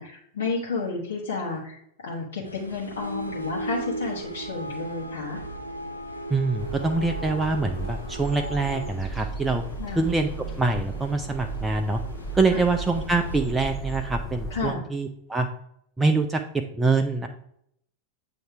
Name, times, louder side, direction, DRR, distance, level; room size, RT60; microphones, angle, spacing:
voice 1, 0.0-5.4 9.8-10.0 12.5-12.6 14.5-14.8, left 4 dB, 60° left, -4 dB, 1.1 m, -31 dB
sound 1, 2.4-13.4, equal, 90° left, 0.8 m, -47 dB
sound 2, 2.9-8.9, right 2 dB, 80° right, 0.4 m, -36 dB
voice 2, 6.3-9.6 10.0-10.3 10.6-12.0 12.3-15.5 16.0-16.4 16.8-17.3, right 3 dB, 10° right, 4 dB, 0.4 m, -24 dB
sound 3, 6.6-14.7, right 3 dB, 15° left, 0.9 m, -35 dB
7.8 x 2.7 x 4.6 m, 0.72 s
figure-of-eight pair, 90°, 0 cm